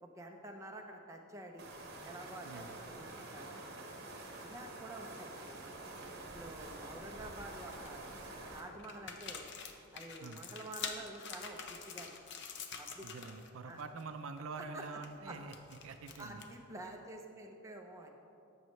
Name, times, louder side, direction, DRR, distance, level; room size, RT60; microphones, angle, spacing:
voice 1, 0.0-1.7 2.0-3.5 4.4-5.7 6.3-8.0 8.5-9.5 9.9-12.2 12.8-13.1 13.7-13.8 14.6-14.8 15.3-15.4 16.2-18.1, right 1 dB, 15° right, 1 dB, 0.5 m, -49 dB
sound 1, 1.6-8.6, right 2 dB, 50° right, 1.1 m, -48 dB
sound 2, 6.8-7.1 7.6-8.2 8.8-13.5 13.7-14.0 14.4-16.7, left 6 dB, 55° left, 0.6 m, -47 dB
voice 2, 13.0-15.5 15.8-16.4, right 4 dB, 70° right, 8 dB, 0.5 m, -46 dB
14.0 x 5.5 x 3.2 m, 2.7 s
head